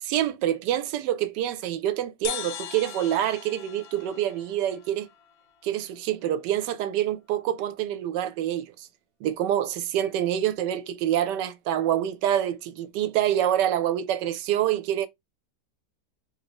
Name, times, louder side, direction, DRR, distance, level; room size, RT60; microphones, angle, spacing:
voice 1, 0.0-5.1 5.6-8.6 9.2-15.1, right 11 dB, 75° right, 1.1 m, -26 dB
sound 1, 2.2-5.8, left 10 dB, 70° left, 1.0 m, -39 dB
3.2 x 2.6 x 2.9 m
omnidirectional pair, 1.9 m